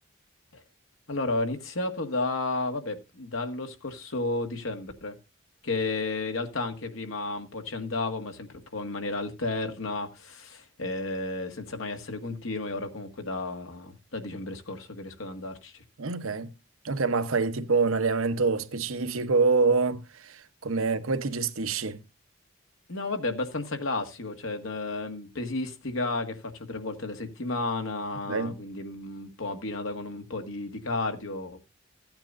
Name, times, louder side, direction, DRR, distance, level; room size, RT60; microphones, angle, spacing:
voice 1, 1.1-5.1 5.6-15.8 22.9-31.6, left 2 dB, 80° left, 1.7 m, -32 dB
voice 2, 16.0-16.5 16.8-22.0 28.3-28.6, right 4 dB, 90° right, 0.9 m, -26 dB
15.5 x 8.9 x 2.5 m
head